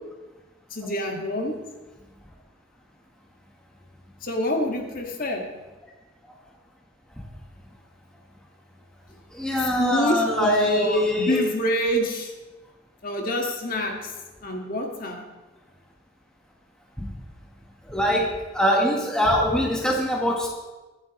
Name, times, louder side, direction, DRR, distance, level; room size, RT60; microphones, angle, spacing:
voice 1, 0.7-1.5 4.2-5.4 9.8-12.3 13.0-14.1 14.4-15.2, left 1 dB, 40° left, 1 dB, 1.7 m, -26 dB
voice 2, 9.3-11.4 17.0-17.1 17.9-20.5, equal, 5° left, -2 dB, 1.2 m, -23 dB
23.5 x 7.9 x 3.1 m, 1.2 s
head